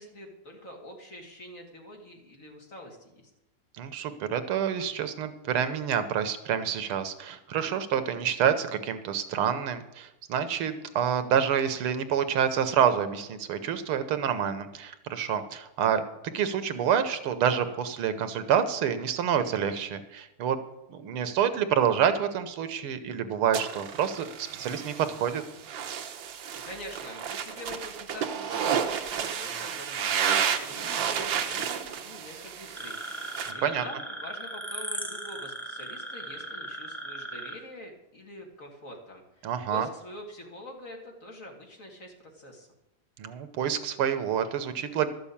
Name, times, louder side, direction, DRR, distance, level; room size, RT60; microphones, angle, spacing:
voice 1, 0.0-3.3 26.3-30.3 30.6-42.7, left 1 dB, 40° left, 1 dB, 2.5 m, -45 dB
voice 2, 3.8-16.0 16.3-20.6 20.9-25.4 33.6-33.8 39.4-39.9 43.2-45.1, right 8 dB, 80° right, 10 dB, 1.9 m, -27 dB
sound 1, 23.5-33.5, right 8 dB, 65° right, 1.6 m, -31 dB
sound 2, 32.7-37.6, right 1 dB, ahead, 1.5 m, -38 dB
12.5 x 7.0 x 8.5 m, 0.93 s
omnidirectional pair, 2.4 m